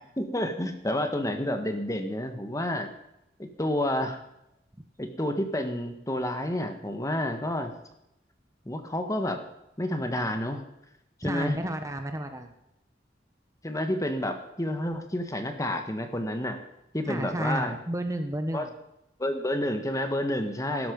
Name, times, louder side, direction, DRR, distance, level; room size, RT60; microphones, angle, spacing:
voice 1, 0.2-2.9 3.6-4.2 5.0-7.7 8.6-9.4 9.8-10.6 11.2-11.6 13.6-16.6 16.9-17.7 18.5-18.7 19.2-20.9, left 1 dB, 20° left, 7 dB, 1.6 m, -29 dB
voice 2, 11.2-12.5 17.0-18.7, right 1 dB, 20° right, 6 dB, 1.2 m, -31 dB
16.5 x 13.0 x 5.4 m, 0.84 s
head